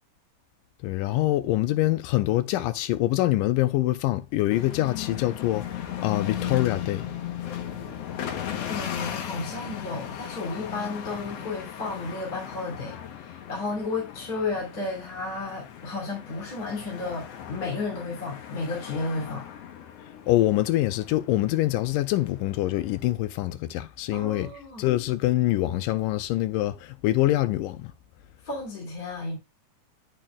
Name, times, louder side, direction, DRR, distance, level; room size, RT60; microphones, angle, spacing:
voice 1, 0.8-7.1 20.3-24.5 24.8-27.9, left 15 dB, 90° left, 2.3 m, -25 dB
sound 1, 4.5-23.1, left 10 dB, 65° left, 1.8 m, -37 dB
voice 2, 8.7-19.5 24.1-24.9 28.4-29.4, left 3 dB, 30° left, 3.1 m, -33 dB
10.5 x 6.9 x 2.3 m
omnidirectional pair, 3.8 m